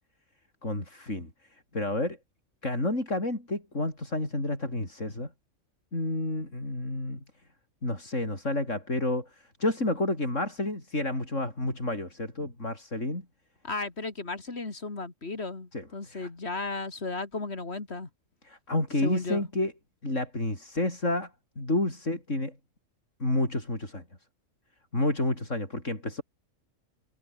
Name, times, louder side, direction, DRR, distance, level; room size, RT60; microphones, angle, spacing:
voice 1, 0.6-2.2 2.6-5.3 5.9-7.2 7.8-13.3 15.7-16.3 18.4-19.7 20.0-21.3 21.6-22.6 23.2-24.0 24.9-26.2, left 2 dB, 70° left, 7.1 m, -30 dB
voice 2, 13.6-18.1 19.0-19.5, left 3 dB, 55° left, 3.0 m, -35 dB
omnidirectional pair, 1.4 m